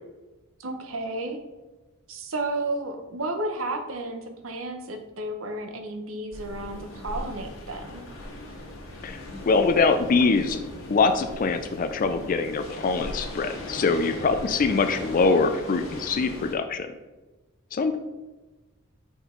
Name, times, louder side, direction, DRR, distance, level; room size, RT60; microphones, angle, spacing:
voice 1, 0.6-1.4 2.1-8.0, right 2 dB, 80° right, 5 dB, 0.9 m, -32 dB
sound 1, 6.3-16.6, left 1 dB, 85° left, 1.5 m, -39 dB
voice 2, 9.5-10.6 10.9-16.9 17.7-18.0, left 4 dB, 40° left, 8 dB, 0.4 m, -23 dB
5.2 x 4.6 x 4.4 m, 1.1 s
head